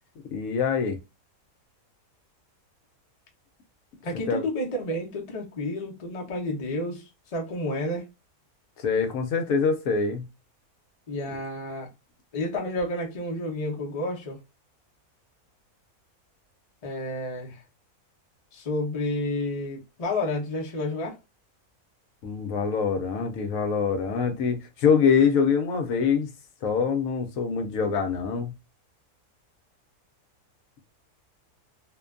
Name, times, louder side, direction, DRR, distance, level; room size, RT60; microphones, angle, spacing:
voice 1, 0.3-1.0 4.3-4.4 8.8-10.3 22.2-26.3 26.6-28.5, left 6 dB, 70° left, 0.9 m, -24 dB
voice 2, 4.0-8.1 11.1-11.9 12.3-14.4 16.8-17.6 18.5-21.2, left 1 dB, 50° left, 0.4 m, -30 dB
2.6 x 2.2 x 2.3 m
omnidirectional pair, 1.6 m